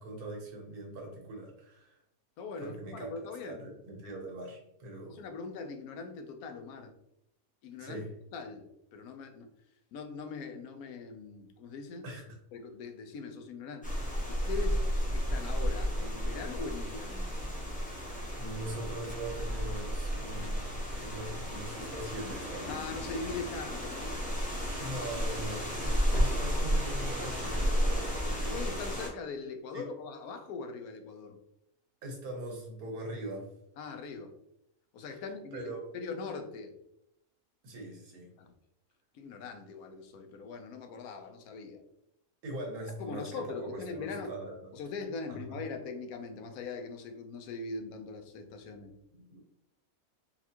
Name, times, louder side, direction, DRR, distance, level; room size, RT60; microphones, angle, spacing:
voice 1, 0.0-2.0 2.6-3.1 3.4-5.2 7.8-8.1 12.0-12.3 18.4-22.8 24.8-28.6 29.7-29.8 32.0-33.5 35.1-35.2 35.5-35.9 37.6-38.3 42.4-43.3 43.6-44.7 45.3-45.6 49.1-49.4, right 1 dB, 80° right, 0 dB, 1.5 m, -41 dB
voice 2, 2.4-3.7 5.1-6.9 7.6-8.0 8.3-8.7 8.9-9.5 9.9-12.1 12.5-13.9 14.3-17.3 22.6-24.2 25.9-26.0 28.5-31.4 33.8-34.3 34.9-36.7 38.4-38.5 39.1-41.8 43.0-44.3 44.7-48.9, left 4 dB, 85° left, 6 dB, 1.1 m, -41 dB
sound 1, 13.8-29.1, equal, 10° left, 0.4 m, -32 dB
4.2 x 2.4 x 2.8 m, 0.77 s
omnidirectional pair, 1.5 m